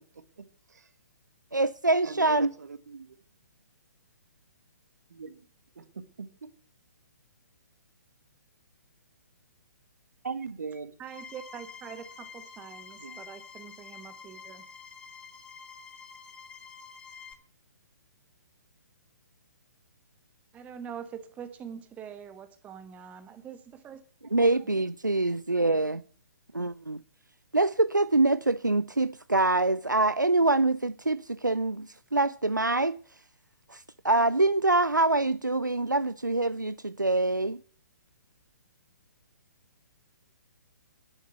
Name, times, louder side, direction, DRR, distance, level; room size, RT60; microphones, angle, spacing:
voice 1, 1.5-2.5 24.3-26.0 26.5-27.0 27.5-33.0 33.7-37.6, right 2 dB, 90° right, 0.5 m, -25 dB
voice 2, 2.0-3.1 5.1-5.4 5.8-6.5 10.2-10.9 13.0-13.2, right 5 dB, 60° right, 1.7 m, -39 dB
sound 1, 11.0-17.3, left 6 dB, 10° left, 1.4 m, -47 dB
voice 3, 11.0-14.7 20.5-24.0 24.4-24.7 25.2-25.4, right 8 dB, 15° right, 1.2 m, -44 dB
11.0 x 8.7 x 7.9 m
figure-of-eight pair, 125°, 10 cm